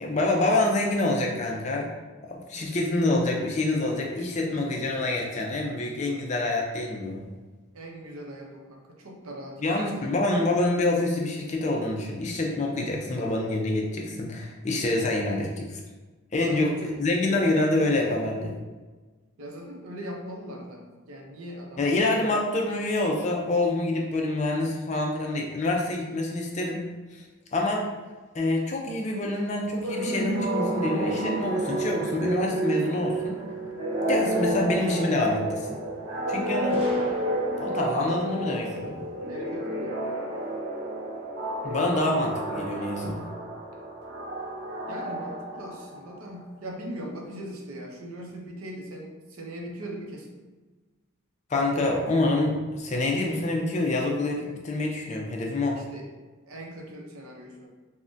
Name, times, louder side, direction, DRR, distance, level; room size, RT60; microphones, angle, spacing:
voice 1, 0.0-1.9 2.2-7.2 9.6-15.8 16.3-18.5 21.8-26.8 27.1-27.2 27.5-27.9 28.3-33.4 34.1-35.7 36.3-36.8 37.5-39.0 41.6-43.2 51.5-55.8, left 2 dB, 35° left, 0 dB, 0.4 m, -26 dB
voice 2, 7.7-10.1 16.4-17.0 19.4-21.8 22.1-22.2 39.3-40.0 44.9-50.3 55.7-56.1 56.5-57.7, equal, 85° right, 1 dB, 0.6 m, -40 dB
sound 1, 29.8-46.2, right 1 dB, 50° right, 0.9 m, -30 dB
Gunshot gunfire, 36.7-37.9, right 1 dB, 30° right, 0.5 m, -42 dB
3.5 x 2.1 x 2.5 m, 1.3 s
head